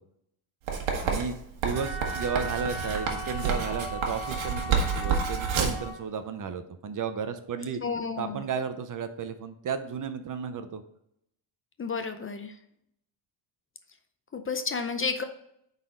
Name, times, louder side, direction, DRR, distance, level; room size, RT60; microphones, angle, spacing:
Writing, 0.7-5.9, right 6 dB, 80° right, 1.5 m, -29 dB
voice 1, 1.0-1.4 1.6-7.8 8.2-10.8, right 6 dB, 40° right, 10 dB, 0.7 m, -33 dB
Wind instrument woodwind instrument, 1.7-6.0, right 1 dB, ahead, 1.7 m, -37 dB
voice 2, 7.8-8.4 11.8-12.6 14.3-15.2, left 5 dB, 30° left, 7 dB, 0.6 m, -31 dB
9.1 x 4.1 x 3.8 m, 0.75 s
cardioid pair, 110°, 47 cm